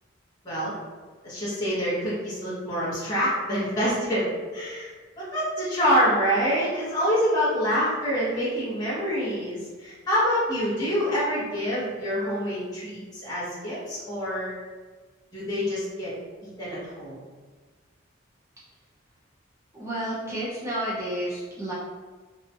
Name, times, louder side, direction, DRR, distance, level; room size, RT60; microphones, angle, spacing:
voice 1, 1.2-4.9 5.2-14.5 15.3-16.1 16.4-17.2, equal, 20° left, -11 dB, 0.9 m, -26 dB
voice 2, 19.7-21.7, right 1 dB, 15° right, -8 dB, 0.5 m, -31 dB
2.7 x 2.3 x 2.7 m, 1.4 s
head